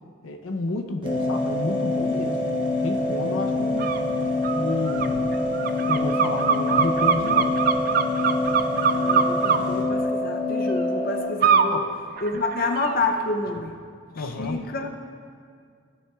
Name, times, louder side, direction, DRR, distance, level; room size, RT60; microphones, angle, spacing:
voice 1, 0.2-2.4 2.8-4.0 4.6-5.2 5.9-7.6 11.7-11.8 14.2-14.6, left 3 dB, 85° left, 5 dB, 0.6 m, -30 dB
sound 1, 1.0-11.2, left 2 dB, 30° left, 0.9 m, -26 dB
sound 2, 1.0-9.8, right 1 dB, 25° right, 1.0 m, -37 dB
sound 3, 3.8-4.0 4.4-9.6 11.4-11.7 12.2-12.9, right 6 dB, 45° right, 0.3 m, -23 dB
voice 2, 8.9-11.8 12.2-13.8 14.1-14.9, left 2 dB, 45° left, 4 dB, 0.5 m, -28 dB
16.0 x 7.3 x 2.3 m, 2.2 s
head